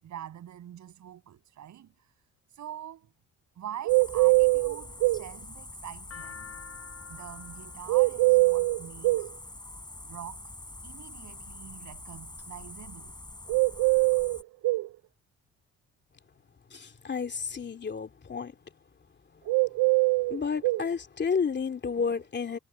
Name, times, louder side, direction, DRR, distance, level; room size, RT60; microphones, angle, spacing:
voice 1, 0.0-3.1 3.6-6.6 7.1-9.3 10.0-10.5 10.8-13.2 22.0-22.1, right 10 dB, 70° right, 7.8 m, -45 dB
sound 1, 3.8-5.3 7.9-9.3 13.5-14.9 19.5-20.8, right 24 dB, 85° right, 0.5 m, -23 dB
sound 2, 3.9-14.4, left 2 dB, 15° left, 7.2 m, -45 dB
sound 3, 5.7-9.9 10.7-11.2 11.8-12.5 12.8-12.9 13.1-13.9, left 8 dB, 50° left, 7.0 m, -49 dB
voice 2, 16.7-18.6 19.3-19.4 20.3-22.6, left 5 dB, 35° left, 2.8 m, -31 dB
cardioid pair, 90°, 30 cm